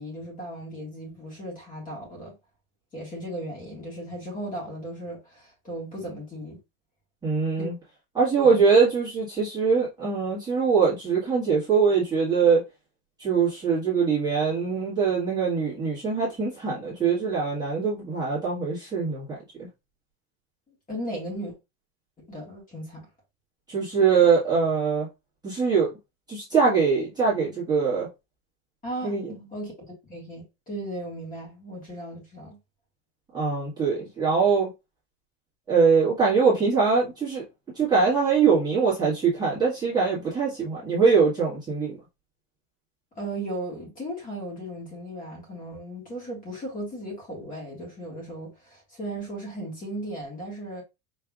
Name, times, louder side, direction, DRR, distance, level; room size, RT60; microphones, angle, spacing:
voice 1, 0.0-2.3 2.9-6.6 7.6-7.7 8.4-8.6 20.7-21.5 22.2-23.1 28.8-29.2 29.5-29.7 30.0-32.6 43.2-50.8, right 1 dB, 15° left, 1.8 m, -36 dB
voice 2, 7.2-7.7 8.1-12.6 13.2-19.4 23.7-25.1 25.4-25.9 26.3-28.1 29.0-29.2 33.3-34.7 35.7-37.4 37.7-42.0, right 5 dB, 10° right, 1.7 m, -22 dB
5.5 x 3.3 x 2.4 m
supercardioid pair, 165°, 49 cm